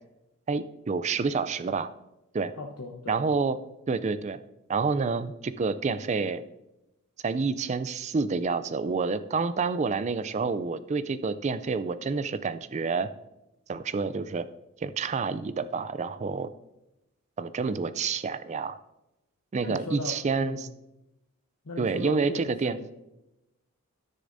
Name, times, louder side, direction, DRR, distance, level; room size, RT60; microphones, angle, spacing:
voice 1, 0.5-1.9 2.3-2.5 3.1-3.6 3.9-4.4 4.7-6.4 7.2-13.1 13.7-14.5 14.8-16.5 17.4-18.8 19.5-20.6 21.8-22.9, right 4 dB, 30° right, 14 dB, 0.3 m, -28 dB
voice 2, 2.6-3.2 19.6-20.6 21.6-22.9, left 2 dB, 85° left, 0 dB, 0.9 m, -38 dB
13.0 x 6.6 x 2.6 m, 0.93 s
head